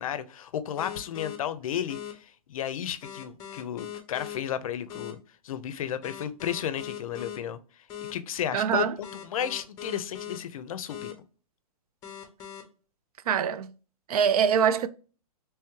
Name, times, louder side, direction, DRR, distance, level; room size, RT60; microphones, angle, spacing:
voice 1, 0.0-5.2 5.4-7.6 8.1-11.1, left 9 dB, 65° left, 0.5 m, -33 dB
sound 1, 0.8-1.4 1.9-2.1 3.0-4.4 4.9-5.1 6.0-7.4 7.9-8.1 9.0-10.4 10.9-11.1 12.0-12.6, left 10 dB, 20° left, 0.6 m, -39 dB
voice 2, 8.5-9.0 13.3-13.7 14.1-14.9, right 7 dB, 80° right, 0.4 m, -23 dB
3.4 x 3.1 x 3.0 m
hypercardioid pair, 160°, 19 cm